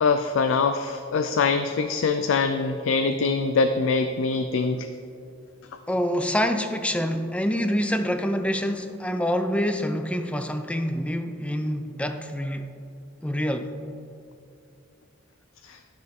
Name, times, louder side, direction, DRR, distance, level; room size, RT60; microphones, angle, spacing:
voice 1, 0.0-4.9 15.6-15.8, left 4 dB, 80° left, 8 dB, 0.4 m, -23 dB
voice 2, 5.9-12.7 13.2-13.7, equal, 5° left, 8 dB, 0.4 m, -26 dB
12.5 x 6.2 x 3.6 m, 2.5 s
head